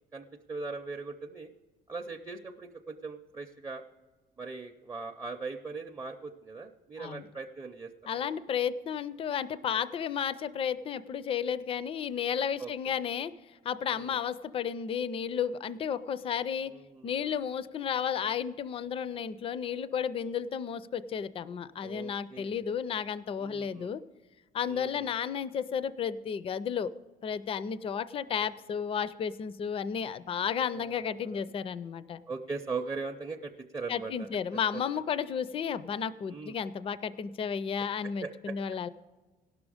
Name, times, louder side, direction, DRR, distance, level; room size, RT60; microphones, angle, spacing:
voice 1, 0.1-1.5 1.9-3.8 4.4-8.2 12.6-13.0 13.9-14.2 16.6-17.2 21.8-22.7 23.4-23.9 24.7-25.1 30.7-31.4 32.3-34.3 36.3-36.6 38.2-38.5, right 4 dB, 20° right, 1 dB, 0.5 m, -40 dB
voice 2, 8.1-13.3 13.6-16.7 17.0-24.0 24.5-26.9 27.2-32.2 33.9-38.9, left 7 dB, 35° left, 15 dB, 0.4 m, -33 dB
17.0 x 6.2 x 4.9 m, 1.3 s
cardioid pair, 110°, 17 cm